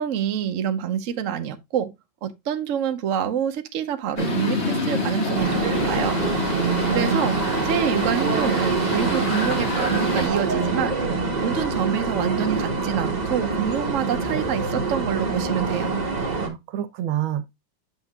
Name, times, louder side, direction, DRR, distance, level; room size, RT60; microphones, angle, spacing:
voice 1, 0.0-1.9 2.2-6.2 6.9-7.3 7.6-10.9 11.4-16.0, right 9 dB, 60° right, 0.8 m, -27 dB
sound 1, 4.2-10.3, left 2 dB, 35° left, 1.9 m, -28 dB
sound 2, 5.3-16.5, right 4 dB, 25° right, 1.0 m, -25 dB
voice 2, 6.5-7.3 16.3-17.4, right 11 dB, 75° right, 1.6 m, -28 dB
8.3 x 6.3 x 2.3 m
omnidirectional pair, 2.3 m